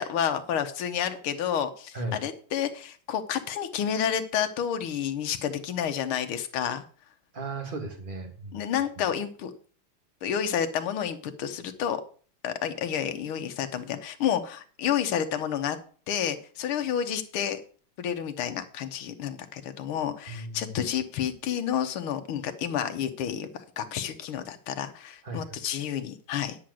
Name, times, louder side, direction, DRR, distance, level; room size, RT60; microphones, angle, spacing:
voice 1, 0.0-6.8 8.5-9.5 10.2-12.0 12.4-15.8 16.1-17.6 18.0-26.6, left 9 dB, 75° left, 8 dB, 1.9 m, -30 dB
voice 2, 7.3-8.5 20.3-20.7 25.2-25.6, right 2 dB, 25° right, 4 dB, 1.9 m, -36 dB
10.0 x 4.9 x 7.7 m, 0.42 s
omnidirectional pair, 2.4 m